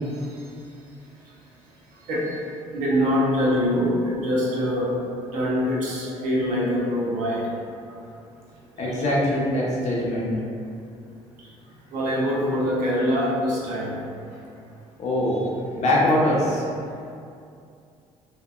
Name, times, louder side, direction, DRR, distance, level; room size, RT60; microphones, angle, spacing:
voice 1, 2.7-4.9 5.3-7.5 11.9-13.9, equal, 75° right, -5 dB, 0.8 m, -24 dB
voice 2, 8.8-10.3 15.0-15.4 15.8-16.6, left 1 dB, 55° left, -6 dB, 0.8 m, -22 dB
2.8 x 2.6 x 2.4 m, 2.5 s
supercardioid pair, 75°, 13 cm